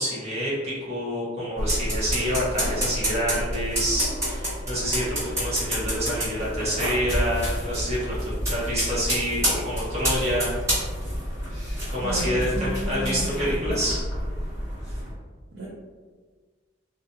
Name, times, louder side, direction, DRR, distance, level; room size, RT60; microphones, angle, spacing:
voice 1, 0.0-8.2 8.4-10.5 11.9-14.0, equal, 35° right, -8 dB, 1.0 m, -27 dB
sound 1, 1.6-15.1, equal, 15° right, 1.3 m, -29 dB
voice 2, 12.0-13.2 13.5-13.7 15.5-15.7, right 1 dB, 65° right, -6 dB, 0.5 m, -33 dB
2.6 x 2.4 x 2.2 m, 1.5 s
head